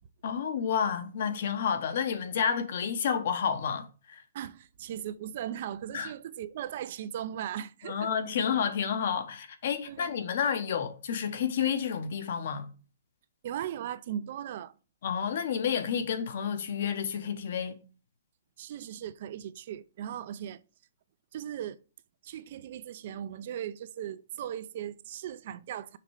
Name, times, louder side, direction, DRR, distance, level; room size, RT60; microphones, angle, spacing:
voice 1, 0.2-4.2 5.9-6.1 7.8-12.7 15.0-17.8, left 7 dB, 50° left, 1.0 m, -30 dB
voice 2, 4.3-8.1 9.9-10.1 13.4-14.7 18.6-20.6 21.3-21.8 22.2-26.0, right 10 dB, 40° right, 0.5 m, -38 dB
5.9 x 4.2 x 4.8 m
hypercardioid pair, 170°, 0 cm